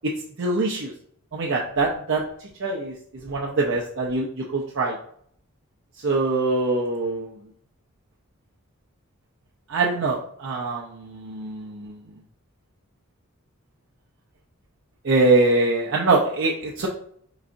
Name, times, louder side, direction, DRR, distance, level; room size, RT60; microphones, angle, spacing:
voice 1, 0.4-0.9 1.3-2.2 2.6-2.9 3.3-4.9 6.0-7.3 9.7-11.9 15.1-16.9, right 3 dB, 55° right, -3 dB, 0.6 m, -23 dB
4.6 x 4.0 x 2.5 m, 0.64 s
head